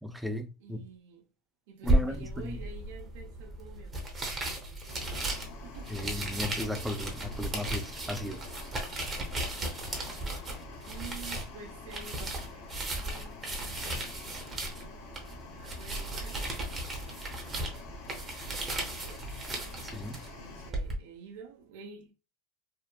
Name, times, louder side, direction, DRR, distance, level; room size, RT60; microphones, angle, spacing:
voice 1, 0.0-0.8 1.8-2.6 5.9-8.4 19.8-20.2, left 1 dB, 5° right, 0.3 m, -36 dB
voice 2, 0.6-1.3 1.7-5.3 5.6-5.9 10.8-14.1 14.8-22.1, right 5 dB, 75° right, 0.6 m, -51 dB
sound 1, 1.8-20.9, right 1 dB, 20° right, 0.7 m, -35 dB
sound 2, 4.9-20.7, left 4 dB, 65° left, 0.8 m, -48 dB
2.8 x 2.4 x 2.2 m
supercardioid pair, 135°, 0 cm